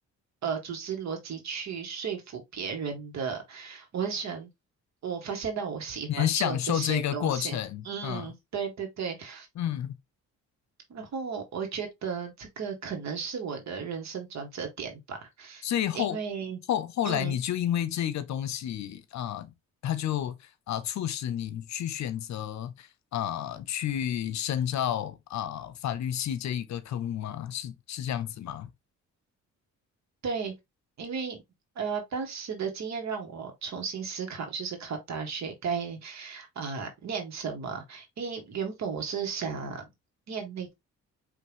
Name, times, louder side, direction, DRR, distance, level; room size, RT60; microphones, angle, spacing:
voice 1, 0.4-4.5 5.0-7.6 7.9-9.5 10.9-15.6 15.9-16.6 17.0-17.3 30.2-30.5 31.0-31.4 31.8-39.8 40.3-40.7, right 6 dB, 65° right, 1.9 m, -34 dB
voice 2, 6.1-8.3 9.5-9.9 15.6-16.2 16.7-19.5 19.8-28.7, left 10 dB, 65° left, 0.8 m, -30 dB
5.3 x 3.2 x 3.0 m
cardioid pair, 90°, 30 cm